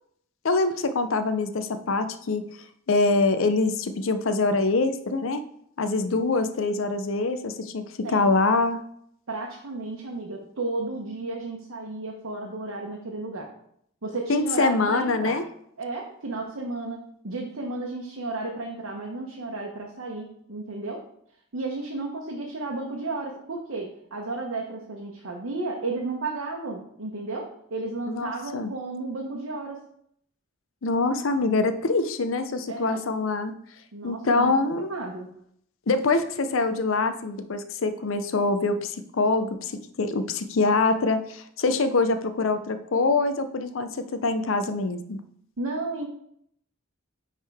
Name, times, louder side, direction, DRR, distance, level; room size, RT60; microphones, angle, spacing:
voice 1, 0.4-2.4 2.9-5.4 5.8-7.8 8.1-8.8 14.3-15.4 28.1-28.7 30.8-33.5 34.0-34.9 35.9-45.2, left 3 dB, 70° left, 10 dB, 0.6 m, -24 dB
voice 2, 9.3-13.5 14.0-15.4 15.8-21.0 21.5-29.8 32.7-33.0 33.9-35.3 45.6-46.1, right 3 dB, 80° right, 0 dB, 0.9 m, -33 dB
9.8 x 3.6 x 3.5 m, 0.70 s
head